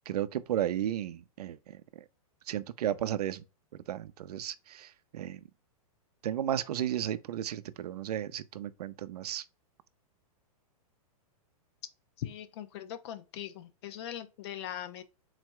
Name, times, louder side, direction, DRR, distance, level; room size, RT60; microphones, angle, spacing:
voice 1, 0.1-2.0 2.5-3.4 3.9-5.4 6.2-9.4, right 11 dB, 85° right, 0.5 m, -34 dB
voice 2, 12.2-15.0, left 11 dB, 45° left, 0.6 m, -40 dB
4.0 x 2.2 x 4.5 m
hypercardioid pair, 155°, 19 cm